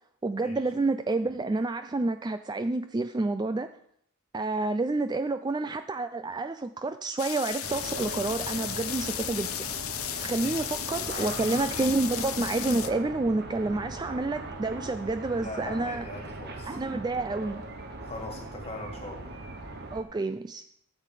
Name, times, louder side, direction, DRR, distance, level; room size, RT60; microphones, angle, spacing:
voice 1, 0.2-3.7 4.3-9.5 10.2-16.1 16.7-17.6 19.9-20.6, right 2 dB, 20° right, 9 dB, 0.3 m, -29 dB
sound 1, 7.2-12.9, left 12 dB, 75° left, 0.7 m, -35 dB
sound 2, 7.6-20.0, right 2 dB, 50° right, 1.3 m, -40 dB
voice 2, 10.4-11.9 15.3-16.8 18.0-19.4, left 2 dB, 30° left, 2 dB, 2.1 m, -41 dB
13.0 x 7.5 x 4.9 m, 0.67 s
head